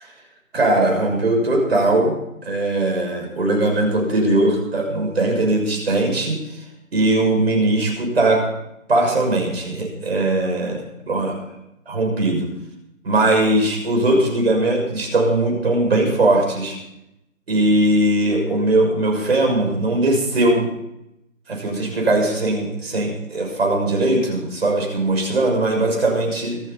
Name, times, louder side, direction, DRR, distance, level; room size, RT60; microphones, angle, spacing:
voice 1, 0.5-6.6 6.9-8.4 8.9-11.4 11.9-12.5 13.0-16.8 17.5-20.7 21.5-26.6, right 2 dB, 50° right, 2 dB, 6.5 m, -20 dB
25.5 x 10.0 x 4.2 m, 0.84 s
figure-of-eight pair, 160°, 40 cm